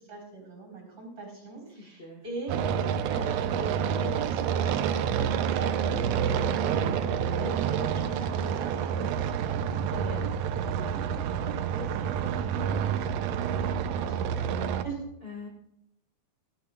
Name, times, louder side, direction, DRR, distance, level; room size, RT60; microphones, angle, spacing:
voice 1, 0.1-7.0 7.4-15.0, right 3 dB, 30° right, -1 dB, 4.4 m, -41 dB
voice 2, 1.8-2.2 7.1-7.3 9.0-9.3 15.2-15.5, left 4 dB, 40° left, -2 dB, 0.8 m, -44 dB
sound 1, 2.5-14.8, right 8 dB, 80° right, 1.5 m, -28 dB
17.5 x 12.0 x 2.3 m, 0.84 s
omnidirectional pair, 3.5 m